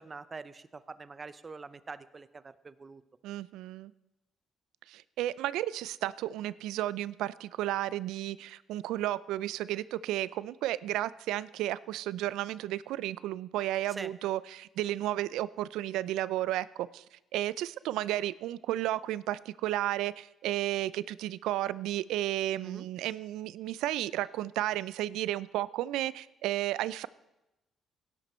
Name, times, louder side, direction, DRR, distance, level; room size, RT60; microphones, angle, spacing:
voice 1, 0.0-3.0 13.9-14.1 22.6-22.9, right 4 dB, 30° right, 15 dB, 0.6 m, -44 dB
voice 2, 3.2-3.9 4.9-27.1, right 14 dB, 90° right, 19 dB, 0.4 m, -33 dB
16.5 x 11.0 x 4.4 m, 0.96 s
cardioid pair, 90°, 0 cm